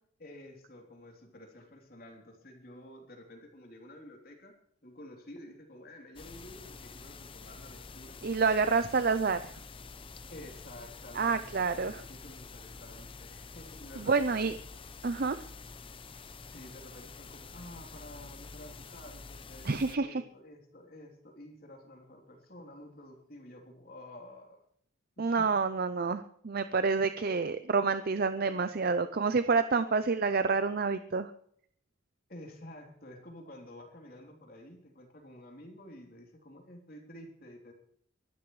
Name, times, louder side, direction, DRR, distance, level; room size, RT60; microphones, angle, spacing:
voice 1, 0.2-4.5 4.8-8.2 10.3-14.6 16.4-24.6 25.2-25.5 32.3-37.7, left 1 dB, 50° left, 2 dB, 3.5 m, -50 dB
sound 1, 6.2-20.0, left 4 dB, 25° left, 0.7 m, -48 dB
voice 2, 8.2-9.4 11.2-11.9 14.0-14.5 15.0-15.4 19.6-20.2 25.2-31.3, right 4 dB, 50° right, 11 dB, 0.6 m, -28 dB
23.5 x 13.0 x 3.2 m, 0.65 s
head